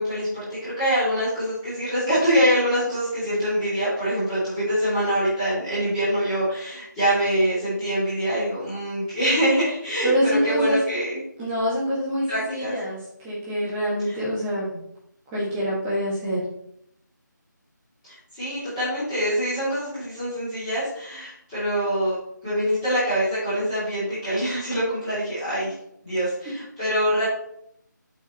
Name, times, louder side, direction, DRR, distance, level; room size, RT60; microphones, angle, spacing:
voice 1, 0.0-11.2 12.3-12.7 14.0-14.2 18.0-25.7 26.0-27.3, equal, 10° left, -13 dB, 2.9 m, -24 dB
voice 2, 10.0-10.8 11.4-13.0 13.2-14.8 15.3-16.4, equal, 10° right, -8 dB, 1.8 m, -25 dB
7.8 x 5.1 x 4.3 m, 0.74 s
figure-of-eight pair, 170°, 10 cm